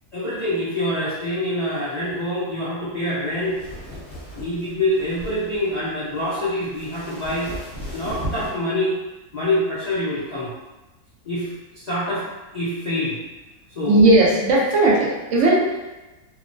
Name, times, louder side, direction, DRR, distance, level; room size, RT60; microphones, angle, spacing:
voice 1, 0.1-3.6 4.4-7.5 7.9-8.9 9.3-10.5 11.2-12.3 12.5-13.2 13.8-14.0, left 1 dB, 80° left, -10 dB, 0.3 m, -25 dB
sound 1, 3.3-8.5, equal, 15° left, 0.9 m, -36 dB
voice 2, 13.8-15.8, right 2 dB, 65° right, -4 dB, 0.8 m, -17 dB
2.9 x 2.1 x 2.5 m, 1.1 s
omnidirectional pair, 1.6 m